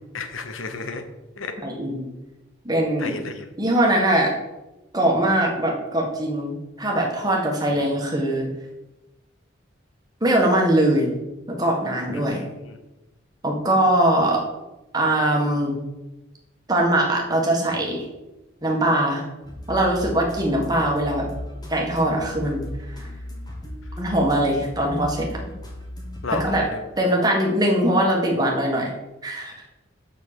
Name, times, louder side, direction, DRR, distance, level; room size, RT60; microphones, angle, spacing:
voice 1, 0.1-1.0 1.4-1.5 3.0-3.5 7.7-7.9 12.1-12.8 26.2-26.8, left 3 dB, 85° left, 7 dB, 1.1 m, -33 dB
voice 2, 1.6-2.1 2.6-3.1 3.6-4.3 4.9-8.5 10.2-11.1 11.5-12.4 13.4-14.5 14.9-15.8 16.7-18.0 18.6-19.2 19.7-21.3 21.7-23.1 24.0-25.4 26.3-26.7 27.0-28.9 29.2-29.5, right 1 dB, 20° right, -1 dB, 1.6 m, -21 dB
sound 1, 19.4-26.5, left 1 dB, 20° left, 1.5 m, -36 dB
6.4 x 5.7 x 6.8 m, 1.0 s
head